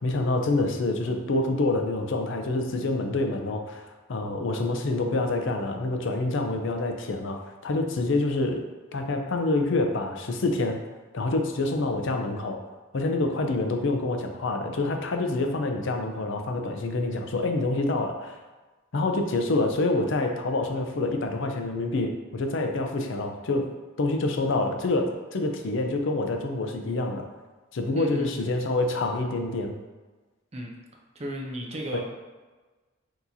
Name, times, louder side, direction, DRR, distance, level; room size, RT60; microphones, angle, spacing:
voice 1, 0.0-8.6 8.9-10.8 11.1-12.6 12.9-18.4 18.9-23.7 24.0-27.3 27.7-29.7 31.9-32.0, left 2 dB, 60° left, 4 dB, 0.5 m, -27 dB
voice 2, 27.9-28.5 30.5-30.7 31.1-32.0, right 1 dB, 30° right, 0 dB, 0.6 m, -35 dB
5.9 x 2.9 x 2.7 m, 1.3 s
head